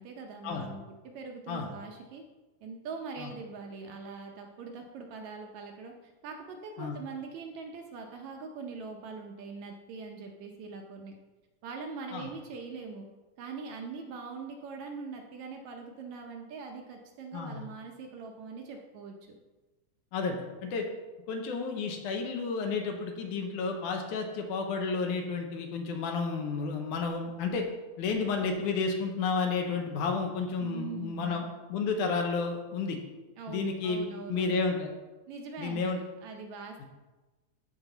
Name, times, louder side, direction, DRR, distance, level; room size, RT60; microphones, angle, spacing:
voice 1, 0.0-2.2 2.6-11.1 11.6-13.1 13.4-19.4 30.6-31.5 33.4-34.6 35.3-36.9, right 4 dB, 75° right, 2 dB, 1.9 m, -42 dB
voice 2, 17.3-17.7 20.1-20.9 21.3-27.7 28.0-33.0 33.5-34.9 35.6-36.0, left 4 dB, 75° left, 3 dB, 2.3 m, -31 dB
13.0 x 4.5 x 4.0 m, 1.2 s
omnidirectional pair, 3.7 m